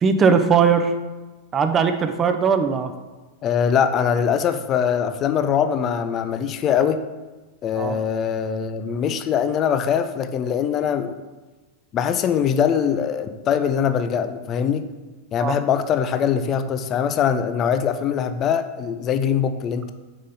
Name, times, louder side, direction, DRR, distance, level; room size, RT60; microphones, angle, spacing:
voice 1, 0.0-0.9 1.5-2.9 7.8-8.0 15.4-15.6, right 6 dB, 25° right, 8 dB, 0.5 m, -19 dB
voice 2, 3.4-7.0 7.6-11.1 11.9-14.8 15.3-19.9, left 8 dB, 30° left, 10 dB, 0.4 m, -22 dB
5.1 x 4.3 x 5.2 m, 1.2 s
figure-of-eight pair, 90°, 0 cm